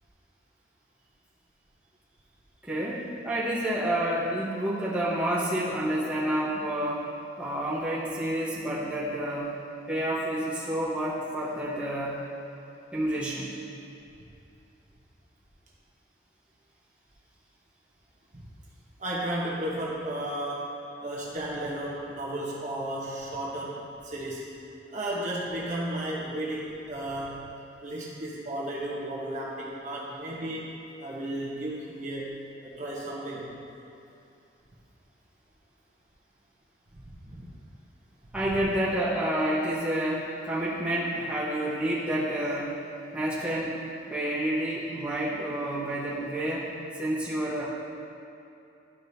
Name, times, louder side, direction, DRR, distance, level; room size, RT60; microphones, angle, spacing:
voice 1, 2.6-7.0 7.4-9.5 9.9-12.2 12.9-13.5 38.3-42.7 43.1-43.8 44.1-46.7 46.9-47.6, right 1 dB, 5° right, -9 dB, 1.1 m, -29 dB
voice 2, 19.0-20.7 21.0-24.5 24.9-27.5 27.8-30.7 31.0-33.5 36.9-37.5, right 1 dB, 40° right, -5 dB, 1.0 m, -34 dB
12.0 x 4.8 x 2.8 m, 2.7 s
head